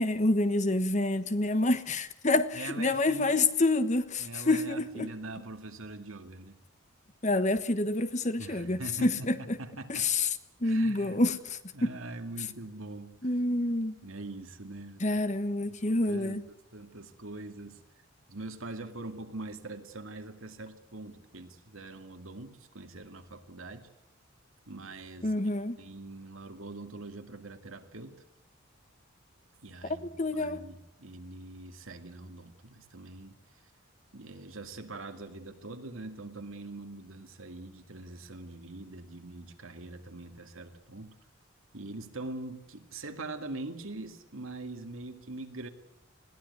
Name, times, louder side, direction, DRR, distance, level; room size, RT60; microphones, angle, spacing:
voice 1, 0.0-5.1 7.2-9.6 9.9-10.3 10.6-11.9 13.2-14.0 15.0-16.4 25.2-25.8 30.0-30.6, left 2 dB, 35° left, 1.2 m, -28 dB
voice 2, 2.5-3.4 4.2-6.6 8.4-10.1 10.6-11.2 11.7-13.1 14.0-15.0 15.8-16.4 16.7-17.8 18.3-23.9 24.7-25.3 25.8-28.2 29.6-33.4 34.1-41.2 41.7-45.7, right 2 dB, 75° right, 2.2 m, -43 dB
21.0 x 16.0 x 9.5 m
head